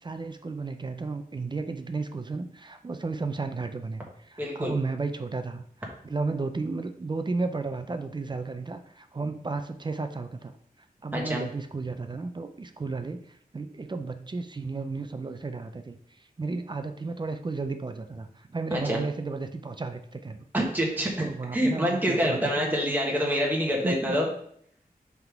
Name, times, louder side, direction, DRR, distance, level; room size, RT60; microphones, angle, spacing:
voice 1, 0.0-5.6 6.0-10.5 11.0-20.4 21.2-22.7 23.8-24.2, right 3 dB, 30° right, 8 dB, 0.5 m, -33 dB
voice 2, 4.4-4.7 11.1-11.4 18.7-19.0 20.5-24.3, equal, 10° right, -2 dB, 1.3 m, -26 dB
5.7 x 3.6 x 4.5 m, 0.64 s
wide cardioid pair, 110°, 15 cm